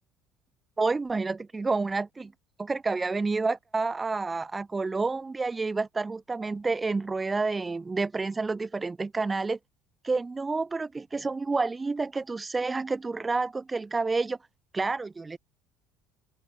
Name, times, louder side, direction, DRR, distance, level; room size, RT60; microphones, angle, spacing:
voice 1, 0.8-2.3 2.6-9.6 10.0-14.4 14.7-15.4, right 3 dB, 15° right, 4.4 m, -29 dB
cardioid pair, 135°, 0 cm